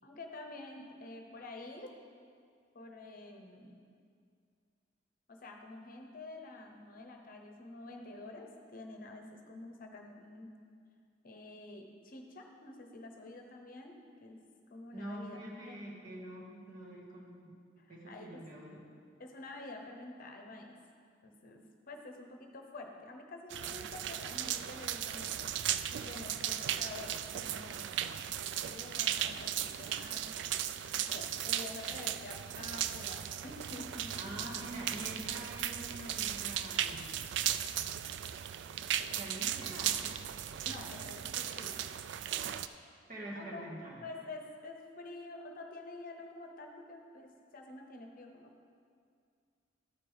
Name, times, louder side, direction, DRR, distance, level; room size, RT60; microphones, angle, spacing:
voice 1, 0.0-1.9 2.7-3.8 5.3-10.6 11.2-14.4 14.7-15.8 17.8-18.4 19.2-20.8 21.2-28.0 28.5-30.5 30.9-34.3 40.6-41.9 43.3-43.7 44.0-48.7, left 2 dB, 50° left, 3 dB, 0.8 m, -48 dB
voice 2, 14.9-17.6 17.9-18.8 34.1-37.2 39.1-40.3 43.1-44.0, right 1 dB, 45° right, -5 dB, 1.9 m, -45 dB
sound 1, 23.5-42.7, right 10 dB, 65° right, 0.3 m, -37 dB
12.5 x 4.4 x 5.0 m, 2.3 s
head